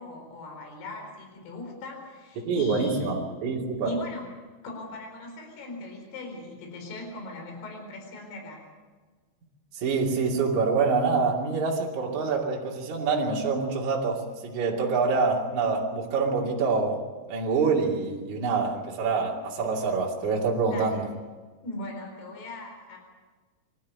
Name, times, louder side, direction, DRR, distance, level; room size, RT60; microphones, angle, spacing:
voice 1, 0.0-3.2 3.8-4.3 4.6-8.6 20.6-21.0 21.6-23.0, left 2 dB, 65° left, 2 dB, 6.3 m, -39 dB
voice 2, 2.4-3.9 9.7-17.0 17.3-21.1, right 4 dB, 45° right, -2 dB, 3.8 m, -26 dB
25.0 x 13.0 x 9.6 m, 1.4 s
omnidirectional pair, 5.0 m